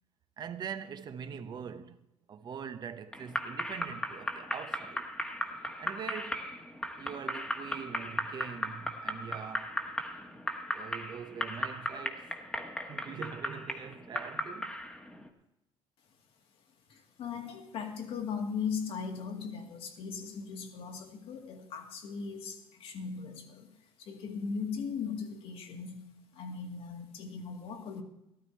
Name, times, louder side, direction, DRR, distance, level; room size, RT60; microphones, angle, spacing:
voice 1, 0.4-2.0 2.3-5.1 5.7-6.5 7.0-9.8 10.7-12.4 12.9-14.8, right 7 dB, 45° right, 0.9 m, -43 dB
sound 1, 3.1-15.3, left 1 dB, 10° left, 1.4 m, -37 dB
voice 2, 16.9-28.0, left 6 dB, 65° left, 2.1 m, -38 dB
13.0 x 13.0 x 4.4 m
cardioid pair, 140°, 10 cm